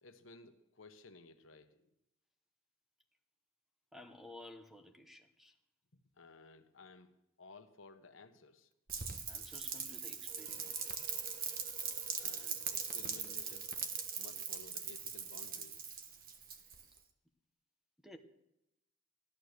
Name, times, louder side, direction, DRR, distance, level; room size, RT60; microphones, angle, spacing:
voice 1, 0.0-1.9 6.2-8.7 12.2-13.7 14.2-15.9, left 3 dB, 75° left, 1.1 m, -57 dB
voice 2, 3.9-5.6 9.3-10.9 18.0-18.2, left 1 dB, ahead, 1.0 m, -54 dB
Rain, 8.9-17.0, right 6 dB, 45° right, 1.3 m, -41 dB
sound 1, 10.3-14.6, right 5 dB, 80° right, 5.9 m, -61 dB
15.0 x 11.5 x 6.6 m
head